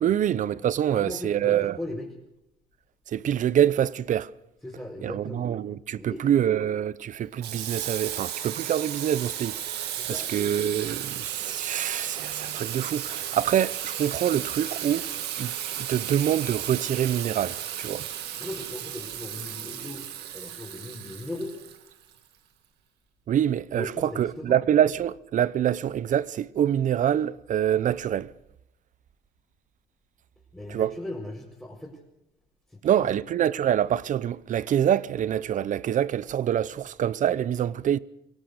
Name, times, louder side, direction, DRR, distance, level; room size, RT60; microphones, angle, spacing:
voice 1, 0.0-1.8 3.1-4.3 5.0-15.1 15.4-18.1 23.3-28.3 30.7-30.9 32.8-38.0, right 10 dB, 50° right, 0.7 m, -25 dB
voice 2, 0.9-2.1 4.6-5.4 6.0-6.3 10.0-10.5 18.4-20.0 20.3-21.5 23.7-24.6 30.5-32.0 32.7-32.8 33.1-33.2, left 1 dB, 5° left, 4.9 m, -38 dB
Water tap faucet / Sink (filling or washing), 7.4-22.2, right 10 dB, 80° right, 2.2 m, -34 dB
23.5 x 17.5 x 6.6 m
cardioid pair, 110°, 17 cm